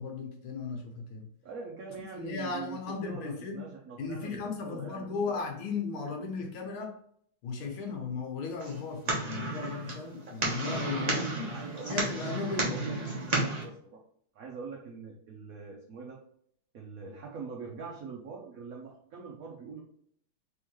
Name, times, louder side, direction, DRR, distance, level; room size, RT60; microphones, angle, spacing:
voice 1, 0.0-1.3 2.2-3.6 4.0-7.0 7.4-11.5 11.8-12.7, left 4 dB, 75° left, 2 dB, 1.6 m, -36 dB
voice 2, 1.4-5.4 10.9-12.0 12.5-13.0 13.3-14.0 14.3-16.2 16.7-19.8, right 5 dB, 80° right, -1 dB, 0.7 m, -43 dB
sound 1, 8.6-13.6, right 2 dB, 60° right, 0.4 m, -32 dB
3.7 x 3.5 x 3.0 m, 0.65 s
omnidirectional pair, 2.4 m